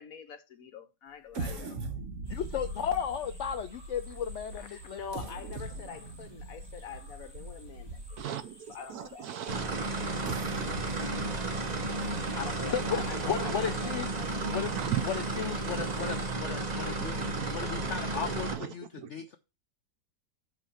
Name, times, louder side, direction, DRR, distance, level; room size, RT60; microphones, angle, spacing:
voice 1, 0.0-1.7 4.5-8.3 8.7-9.3 12.4-14.3, left 7 dB, 60° left, 1.2 m, -44 dB
sound 1, 1.3-8.4 9.0-9.1 10.0-13.5 14.0-14.1 14.5-14.8, right 2 dB, 50° right, 1.2 m, -41 dB
sound 2, 2.2-16.3, right 1 dB, 15° right, 2.1 m, -55 dB
voice 2, 2.3-5.0 9.7-9.9 11.5-11.7 12.7-13.0 13.3-14.1 14.5-14.7 15.0-19.4, left 8 dB, 85° left, 0.6 m, -35 dB
voice 3, 8.2-10.4 12.8-12.9 13.2-13.5 14.8-15.0 15.7-16.2 17.1-17.9 18.2-18.7 19.0-19.1, right 11 dB, 70° right, 1.0 m, -38 dB
sound 3, 9.5-18.6, right 2 dB, 30° right, 0.8 m, -33 dB
6.4 x 5.5 x 5.5 m
omnidirectional pair, 1.9 m